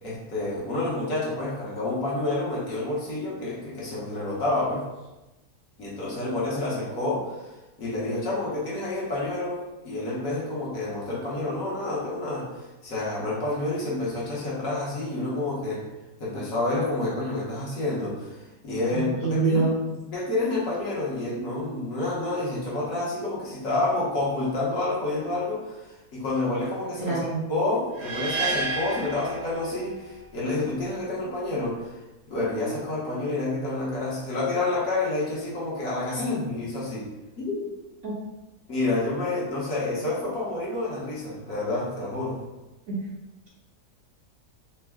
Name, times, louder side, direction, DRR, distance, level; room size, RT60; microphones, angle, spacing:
voice 1, 0.0-4.8 5.8-15.8 16.2-19.7 20.1-32.0 32.3-37.1 37.4-37.6 38.7-42.4, left 2 dB, 60° left, -6 dB, 1.2 m, -29 dB
voice 2, 18.9-19.7 27.0-27.4 38.0-38.1 42.9-43.0, right 4 dB, 60° right, -5 dB, 0.9 m, -25 dB
sound 1, 28.0-30.1, right 3 dB, 90° right, 1.2 m, -30 dB
3.4 x 2.1 x 3.3 m, 1.1 s
omnidirectional pair, 1.7 m